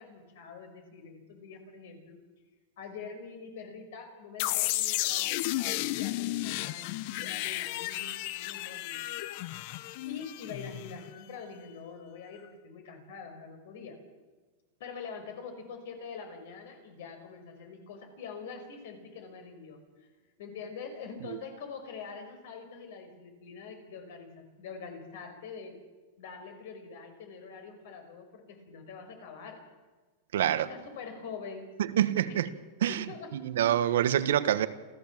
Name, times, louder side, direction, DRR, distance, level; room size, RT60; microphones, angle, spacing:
voice 1, 0.0-2.2 2.8-9.0 10.0-14.0 14.8-20.1 20.4-25.8 26.2-29.6 30.4-31.7 32.3-32.4 32.9-33.3, left 5 dB, 65° left, 5.4 m, -45 dB
sound 1, 4.4-11.2, left 17 dB, 45° left, 0.7 m, -33 dB
voice 2, 30.3-30.7 31.8-32.5 32.8-33.0 33.3-34.7, right 11 dB, 85° right, 1.3 m, -26 dB
28.0 x 14.5 x 7.5 m
supercardioid pair, 165°, 0 cm